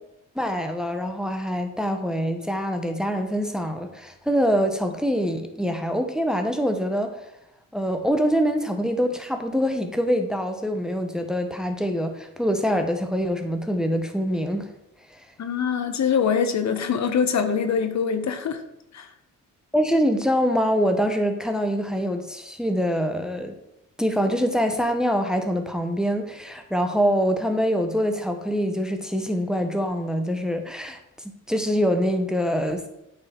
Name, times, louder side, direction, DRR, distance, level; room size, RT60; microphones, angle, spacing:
voice 1, 0.3-7.2 7.7-14.7 15.1-15.2 19.7-23.5 24.0-31.0 31.2-32.9, equal, ahead, 6 dB, 0.8 m, -24 dB
voice 2, 15.4-18.6 18.9-19.1, left 6 dB, 55° left, 8 dB, 0.8 m, -23 dB
8.6 x 4.0 x 4.3 m, 0.84 s
cardioid pair, 90°, 32 cm